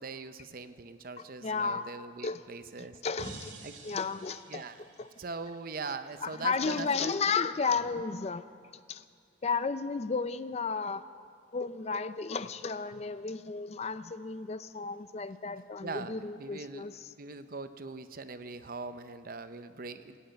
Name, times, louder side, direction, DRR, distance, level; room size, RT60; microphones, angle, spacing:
voice 1, 0.0-3.0 3.6-3.8 4.5-4.8 5.2-7.1 15.8-20.2, right 4 dB, 50° right, 10 dB, 0.7 m, -41 dB
voice 2, 1.4-1.9 2.2-2.4 2.8-3.5 3.8-4.6 5.0-5.1 6.2-8.4 8.9-9.0 9.4-11.0 11.5-17.1, left 4 dB, 35° left, 13 dB, 0.4 m, -33 dB
sound 1, 3.2-6.3, right 2 dB, 75° right, 2.3 m, -49 dB
17.0 x 9.2 x 8.8 m, 2.1 s
head